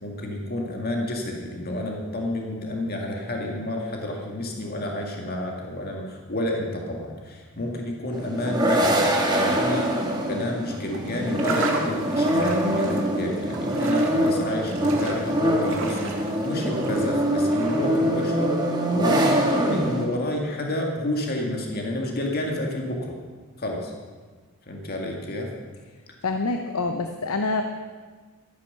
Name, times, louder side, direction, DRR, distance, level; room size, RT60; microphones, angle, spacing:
voice 1, 0.0-23.1 23.6-23.9 24.7-25.5, left 1 dB, 45° left, 1 dB, 2.1 m, -30 dB
sound 1, 8.1-20.1, right 1 dB, 20° right, 1.9 m, -24 dB
sound 2, 10.7-18.2, right 3 dB, 60° right, 2.4 m, -36 dB
voice 2, 26.2-27.6, left 3 dB, 85° left, 6 dB, 0.8 m, -26 dB
13.0 x 9.9 x 6.8 m, 1.4 s
head